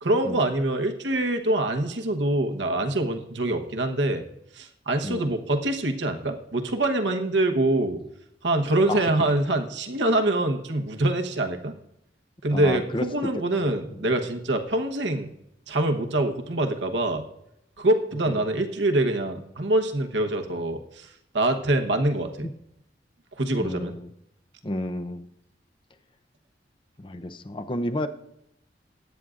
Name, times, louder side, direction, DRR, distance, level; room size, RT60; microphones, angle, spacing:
voice 1, 0.0-4.2 4.5-8.0 8.4-11.7 12.4-15.3 15.7-17.2 17.8-21.1 21.3-22.5 23.4-23.9, right 1 dB, 85° right, 5 dB, 1.1 m, -25 dB
voice 2, 12.5-13.1 13.9-14.1 18.3-18.5 23.6-24.1 24.6-25.3 27.0-28.1, left 1 dB, 30° left, 8 dB, 0.6 m, -31 dB
21.5 x 9.5 x 2.5 m, 0.81 s
head